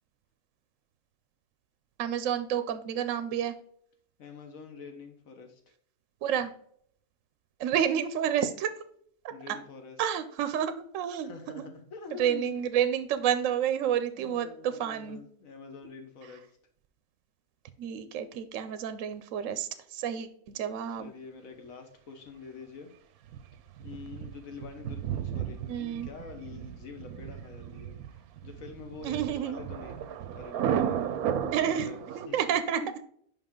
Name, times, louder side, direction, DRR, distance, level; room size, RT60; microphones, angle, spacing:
voice 1, 2.0-3.5 6.2-6.5 7.6-8.7 9.5-9.6 10.0-11.7 12.2-15.2 17.8-21.1 25.7-26.1 29.0-29.6 31.5-32.8, right 9 dB, 70° right, 10 dB, 0.9 m, -30 dB
voice 2, 4.2-5.7 9.3-10.0 11.2-12.6 14.1-16.6 21.0-22.9 23.8-31.2 31.6-32.4 32.7-32.9, left 5 dB, 70° left, 5 dB, 1.5 m, -46 dB
Thunder, 23.3-32.3, right 9 dB, 90° right, 1.1 m, -34 dB
5.5 x 5.5 x 3.7 m, 0.63 s
omnidirectional pair, 1.5 m